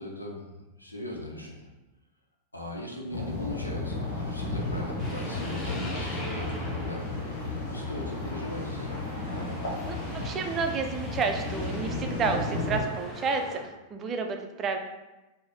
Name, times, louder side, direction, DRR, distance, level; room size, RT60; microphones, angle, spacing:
voice 1, 0.0-1.7 2.5-7.2 7.6-9.0, left 1 dB, 85° left, 0 dB, 0.6 m, -39 dB
sound 1, 3.1-12.8, left 2 dB, 65° left, 1.0 m, -33 dB
sound 2, 5.0-13.6, left 1 dB, 15° left, 1.1 m, -40 dB
voice 2, 9.9-13.6 13.9-14.8, right 5 dB, 25° right, 4 dB, 0.4 m, -30 dB
4.0 x 2.0 x 3.5 m, 1.1 s
figure-of-eight pair, 90°, 0 cm